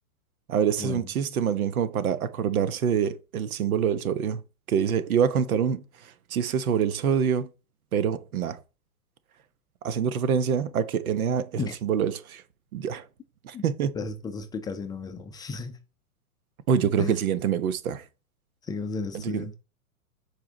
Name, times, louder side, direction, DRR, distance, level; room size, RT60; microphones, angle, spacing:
voice 1, 0.5-4.4 4.7-7.5 7.9-8.6 9.8-12.4 12.7-13.1 13.4-13.9 16.7-18.0 19.1-19.6, right 7 dB, 75° right, 1.1 m, -26 dB
voice 2, 14.0-15.8 17.0-17.2 18.7-19.5, left 4 dB, 10° left, 0.5 m, -33 dB
7.0 x 4.7 x 3.8 m
hypercardioid pair, 125°, 43 cm